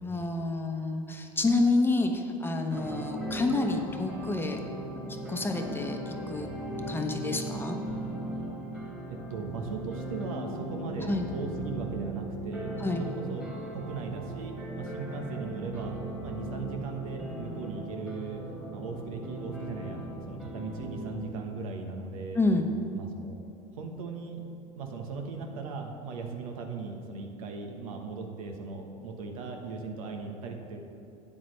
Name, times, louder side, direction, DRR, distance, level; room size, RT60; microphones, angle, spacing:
voice 1, 0.0-4.6 5.3-6.5 6.9-7.8 11.1-11.2 12.8-13.0 22.3-22.7, left 2 dB, 10° left, 3 dB, 1.0 m, -28 dB
sound 1, 2.7-21.2, right 2 dB, 10° right, 2.2 m, -38 dB
voice 2, 9.1-12.7 13.0-15.9 16.2-18.4 18.7-22.4 22.9-23.4 23.7-24.5 24.8-30.8, right 4 dB, 80° right, 3 dB, 1.2 m, -38 dB
12.0 x 8.6 x 3.3 m, 2.8 s
hypercardioid pair, 90°, 18 cm